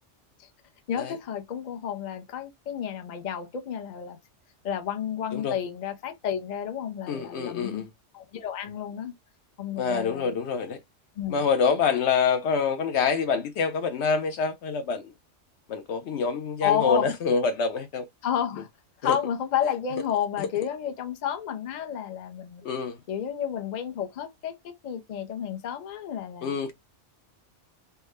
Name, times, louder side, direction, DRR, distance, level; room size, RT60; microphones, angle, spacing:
voice 1, 0.9-4.2 4.6-7.8 8.1-9.1 9.6-10.4 11.2-11.4 16.6-17.1 18.2-18.7 19.0-22.6 23.1-26.5, left 9 dB, 50° left, 0.6 m, -31 dB
voice 2, 7.1-7.9 9.8-10.8 11.3-15.1 15.7-18.0 19.0-19.2 20.4-20.5 22.6-23.0 26.4-26.7, left 5 dB, 70° left, 0.9 m, -26 dB
3.5 x 2.1 x 3.1 m
omnidirectional pair, 1.2 m